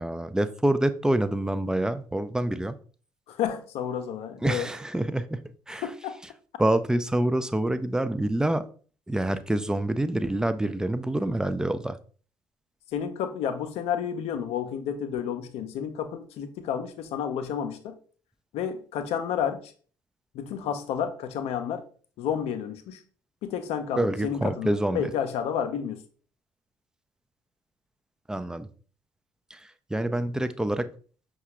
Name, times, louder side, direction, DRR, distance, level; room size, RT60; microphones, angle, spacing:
voice 1, 0.0-2.8 4.4-5.4 5.7-5.9 6.6-8.6 9.1-12.0 24.0-25.1 28.3-28.7 29.5-29.6 29.9-30.9, right 1 dB, 5° right, 0.4 m, -26 dB
voice 2, 3.3-4.7 5.8-6.2 12.9-18.0 18.5-19.7 20.3-21.8 22.2-23.0 23.4-26.0, left 8 dB, 60° left, 0.5 m, -31 dB
5.5 x 2.3 x 2.9 m
hypercardioid pair, 55°, 12 cm